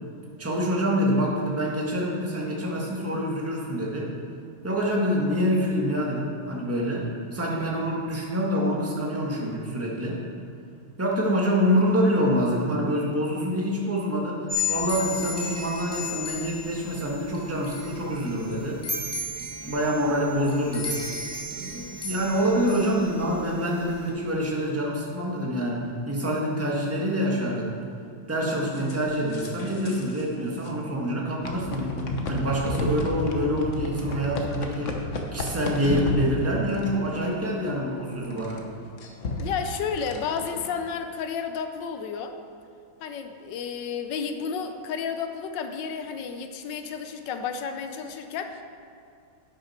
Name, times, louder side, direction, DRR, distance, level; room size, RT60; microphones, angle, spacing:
voice 1, 0.4-4.1 4.6-7.0 7.3-10.2 11.0-14.4 14.7-18.8 19.6-21.0 21.5-27.8 28.3-32.0 32.3-34.9 35.3-38.6, equal, 10° right, -3 dB, 1.2 m, -26 dB
sound 1, 14.5-24.1, left 3 dB, 10° left, 2.0 m, -34 dB
sound 2, 28.8-30.2 30.5-30.7 31.4-40.7, left 2 dB, 50° left, 1.0 m, -33 dB
voice 2, 39.4-42.4 43.0-48.6, left 6 dB, 70° left, 7 dB, 1.2 m, -32 dB
11.0 x 8.7 x 4.4 m, 2.5 s
omnidirectional pair, 2.3 m